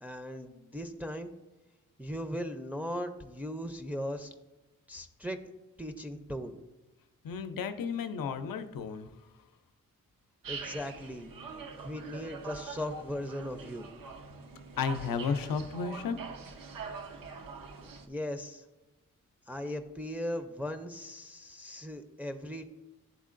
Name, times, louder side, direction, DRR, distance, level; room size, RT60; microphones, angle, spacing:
voice 1, 0.0-1.3 2.0-4.3 4.9-5.4 5.8-6.6 10.5-11.3 11.8-13.9 18.1-18.6 19.5-22.7, equal, 5° right, 5 dB, 0.5 m, -38 dB
voice 2, 7.2-9.1 14.8-16.2, left 5 dB, 80° left, 9 dB, 0.6 m, -33 dB
sound 1, 10.4-18.1, right 4 dB, 75° right, 0.7 m, -44 dB
10.5 x 3.7 x 2.5 m, 1.1 s
cardioid pair, 50°, 34 cm